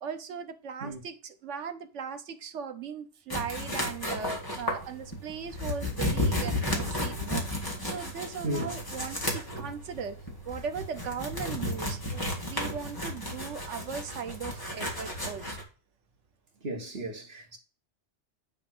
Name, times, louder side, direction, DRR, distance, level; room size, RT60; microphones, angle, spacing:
voice 1, 0.0-7.4 7.8-10.2 10.4-15.6, right 6 dB, 85° right, 1.2 m, -38 dB
sound 1, 3.3-15.6, left 1 dB, 20° left, 1.9 m, -33 dB
voice 2, 8.4-8.8 16.6-17.6, right 1 dB, 55° right, 1.9 m, -35 dB
9.9 x 3.5 x 5.9 m
omnidirectional pair, 1.2 m